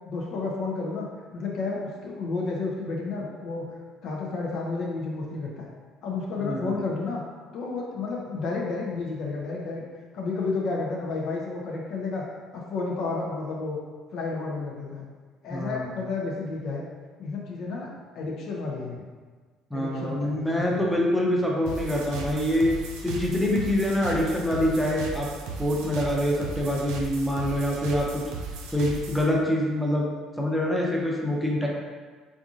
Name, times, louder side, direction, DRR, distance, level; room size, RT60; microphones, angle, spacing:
voice 1, 0.1-5.7 6.0-7.2 7.5-9.8 10.1-12.2 12.5-13.8 14.1-15.1 15.4-16.8 17.2-19.0 19.7-20.9, left 3 dB, 50° left, -2 dB, 0.6 m, -31 dB
voice 2, 6.4-6.8 15.5-15.9 19.7-22.7 23.0-25.3 25.6-28.2 28.7-30.1 30.4-31.7, left 1 dB, 5° left, -3 dB, 0.7 m, -25 dB
sound 1, 21.7-29.2, right 4 dB, 60° right, 0.4 m, -36 dB
3.7 x 3.5 x 2.4 m, 1.5 s
figure-of-eight pair, 55°, 0 cm